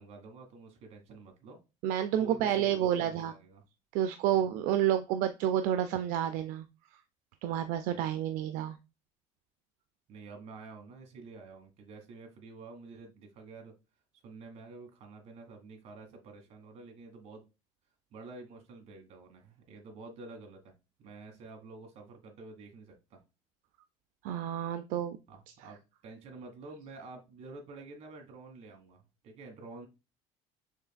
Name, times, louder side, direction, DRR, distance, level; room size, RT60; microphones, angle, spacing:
voice 1, 0.0-1.6 2.2-3.6 4.3-4.4 10.1-13.7 14.2-17.4 18.1-20.7 21.0-23.2 25.3-29.9, right 3 dB, 55° right, 3 dB, 1.4 m, -49 dB
voice 2, 1.8-3.3 3.9-6.7 7.4-8.8 24.2-25.2, right 10 dB, 75° right, 9 dB, 0.4 m, -29 dB
6.4 x 3.3 x 2.2 m, 0.27 s
cardioid pair, 170°, 14 cm